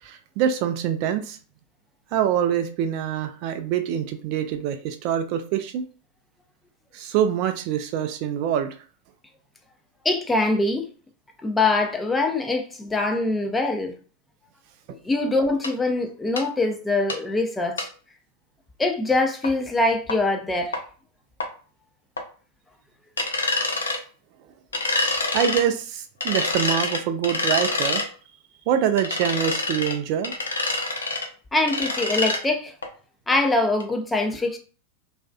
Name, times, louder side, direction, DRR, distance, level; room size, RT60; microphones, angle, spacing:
voice 1, 0.0-1.4 2.1-5.8 6.9-8.8 25.3-28.0 28.7-30.3, right 9 dB, 50° right, 0.3 m, -25 dB
voice 2, 10.0-10.9 11.4-13.9 15.0-17.9 18.8-20.8 31.5-32.7 33.3-34.6, left 2 dB, 10° left, 0.5 m, -23 dB
sound 1, 15.6-15.7 16.4-16.5 17.1-17.2 17.8-17.9 19.4-19.5 20.1-20.2 20.7-20.8 21.4-21.5 22.2-22.3 23.2-24.0 24.7-25.6 26.2-28.1 29.0-30.0 30.2-31.3 31.6-32.4 32.8-32.9 33.3-33.4 33.8-33.9, left 3 dB, 80° left, 0.5 m, -26 dB
2.4 x 2.3 x 2.2 m
figure-of-eight pair, 95°, 0 cm